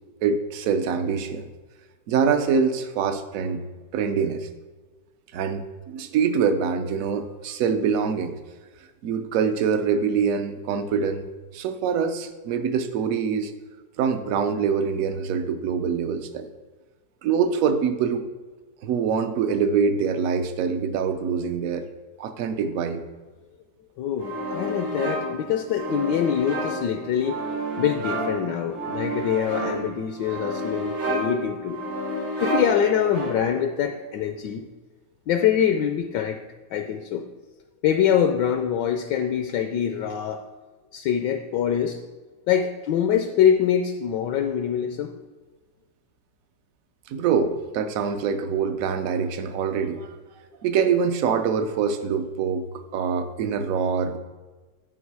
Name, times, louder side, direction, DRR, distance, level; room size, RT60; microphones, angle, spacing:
voice 1, 0.2-1.5 2.1-3.6 3.9-4.5 5.3-8.4 9.0-11.3 11.5-13.5 14.0-16.5 17.2-18.3 18.8-21.8 22.2-23.0 47.1-50.2 50.6-54.2, right 6 dB, 65° right, 9 dB, 0.8 m, -24 dB
voice 2, 24.0-27.4 27.8-31.8 32.4-34.6 35.3-36.4 36.7-37.3 37.8-40.4 40.9-42.0 42.5-45.1, left 9 dB, 75° left, 6 dB, 1.1 m, -24 dB
sound 1, 24.2-33.7, right 1 dB, 85° right, 2.8 m, -30 dB
10.0 x 4.8 x 4.7 m, 1.3 s
omnidirectional pair, 2.0 m